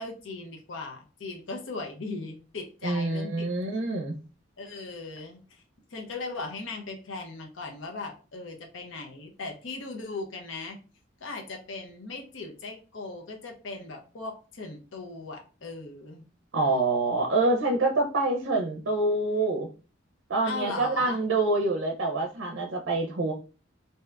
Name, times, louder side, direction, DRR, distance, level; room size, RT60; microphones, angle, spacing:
voice 1, 0.0-3.5 4.6-5.6 5.9-10.8 11.2-16.2 20.4-21.2, left 3 dB, 70° left, 2 dB, 0.6 m, -38 dB
voice 2, 2.8-4.2 16.5-19.7 20.3-23.3, right 2 dB, 60° right, 1 dB, 0.5 m, -26 dB
2.7 x 2.4 x 3.3 m, 0.35 s
head